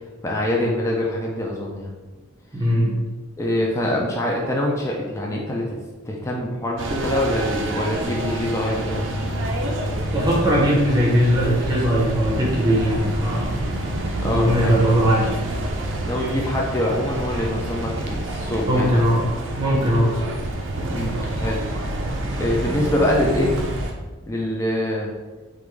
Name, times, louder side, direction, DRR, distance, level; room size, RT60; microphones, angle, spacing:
voice 1, 0.2-1.9 3.4-5.8 6.1-9.3 14.2-15.0 16.0-19.0 20.9-21.8 22.4-23.5 24.3-25.1, left 1 dB, 15° left, -2 dB, 0.3 m, -24 dB
voice 2, 2.5-2.9 10.1-13.5 14.2-15.3 18.7-19.2 19.6-20.1, equal, 20° right, -3 dB, 0.7 m, -19 dB
sound 1, 6.8-23.9, right 1 dB, 60° right, 0.4 m, -27 dB
3.4 x 2.5 x 3.1 m, 1.2 s
head